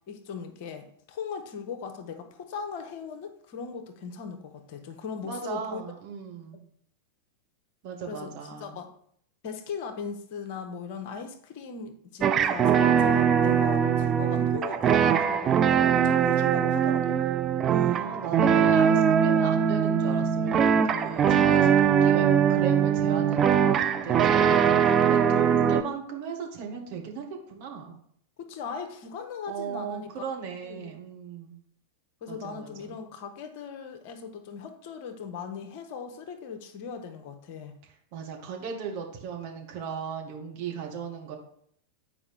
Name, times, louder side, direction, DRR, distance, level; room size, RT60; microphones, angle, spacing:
voice 1, 0.1-5.8 8.1-8.3 8.6-8.9 9.4-17.2 28.4-30.3 30.7-30.9 32.2-37.8, left 6 dB, 45° left, 7 dB, 0.9 m, -39 dB
voice 2, 5.2-6.6 7.8-8.8 17.7-27.9 29.5-31.6 32.3-33.0 38.1-41.4, right 6 dB, 45° right, 0 dB, 1.5 m, -37 dB
sound 1, 12.2-25.8, right 8 dB, 25° right, 0.4 m, -22 dB
8.4 x 4.8 x 3.5 m, 0.65 s
figure-of-eight pair, 90°, 0 cm